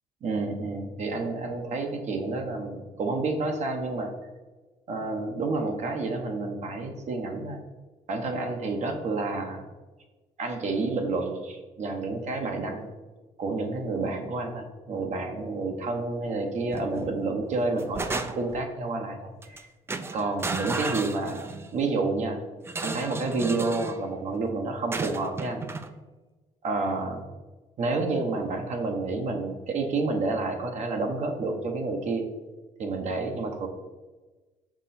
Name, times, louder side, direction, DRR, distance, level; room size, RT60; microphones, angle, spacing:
voice 1, 0.2-4.1 4.9-7.6 8.1-9.6 10.4-12.9 13.4-19.7 20.1-22.4 22.8-25.6 26.6-27.3 27.8-32.3 32.8-33.7, right 3 dB, 50° right, 3 dB, 0.9 m, -29 dB
sound 1, 16.7-17.1 17.5-18.6 19.4-19.6 19.9-21.7 22.7-24.0 24.9-25.9, right 3 dB, 15° right, 0.4 m, -33 dB
6.1 x 5.2 x 4.2 m, 1.2 s
cardioid pair, 125°, 15 cm